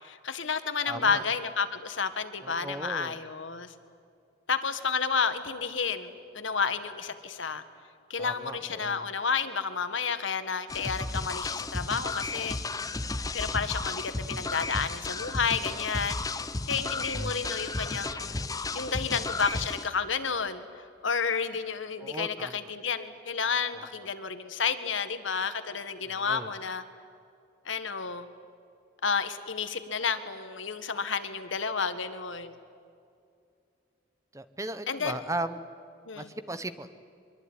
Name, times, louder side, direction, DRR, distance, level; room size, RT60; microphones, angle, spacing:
voice 1, 0.0-3.7 4.5-7.6 8.1-12.6 13.3-16.2 16.7-18.3 18.7-26.8 27.6-28.3 29.0-32.6 34.9-35.2 36.0-36.3, left 5 dB, 75° left, 10 dB, 1.6 m, -31 dB
voice 2, 0.9-1.2 2.4-3.2 8.2-9.0 22.0-22.6 23.7-23.9 26.1-26.5 34.3-35.6 36.1-36.9, right 2 dB, 15° right, 12 dB, 0.9 m, -37 dB
sound 1, 10.7-19.9, left 3 dB, 20° left, 0.6 m, -33 dB
24.5 x 22.5 x 9.7 m, 2.4 s
head